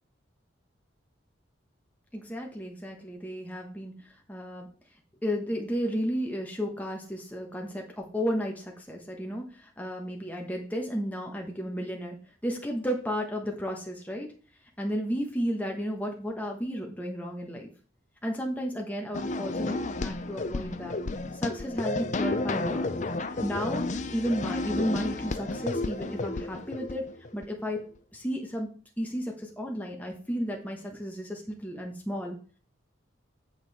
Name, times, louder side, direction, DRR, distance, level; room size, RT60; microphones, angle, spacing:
voice 1, 2.1-4.7 5.2-12.2 12.4-14.3 14.8-17.7 18.2-21.0 21.3-22.9 23.4-27.8 28.1-28.7 29.0-32.4, equal, 10° left, 0 dB, 1.2 m, -33 dB
sound 1, 19.1-27.5, left 2 dB, 35° left, 0.5 m, -32 dB
8.7 x 5.3 x 4.3 m, 0.40 s
head